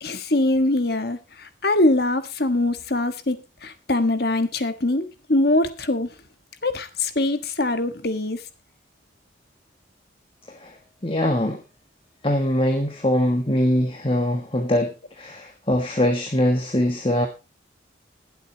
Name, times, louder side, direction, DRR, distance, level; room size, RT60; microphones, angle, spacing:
voice 1, 0.0-6.1 6.6-8.4, left 2 dB, 55° left, 10 dB, 1.5 m, -23 dB
voice 2, 11.0-11.6 12.2-17.3, left 1 dB, 30° left, 3 dB, 1.4 m, -22 dB
21.0 x 8.0 x 2.9 m, 0.27 s
head